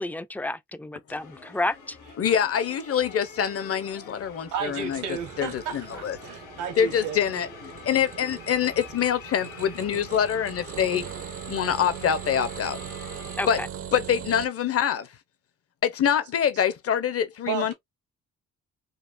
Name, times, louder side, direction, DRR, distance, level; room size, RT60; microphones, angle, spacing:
voice 1, 0.0-2.0 13.4-13.7, left 2 dB, 5° left, 0.3 m, -31 dB
sound 1, 1.1-13.4, left 5 dB, 80° left, 1.5 m, -45 dB
voice 2, 2.2-5.0 5.4-6.2 6.8-7.5 7.8-11.0 11.5-12.8 13.5-13.6 13.9-15.1 15.8-17.7, left 8 dB, 50° left, 0.8 m, -25 dB
sound 2, 4.3-14.5, right 9 dB, 50° right, 0.5 m, -40 dB
voice 3, 4.5-7.2 17.5-17.7, right 7 dB, 85° right, 1.2 m, -33 dB
3.9 x 2.5 x 2.5 m
cardioid pair, 90°, 30 cm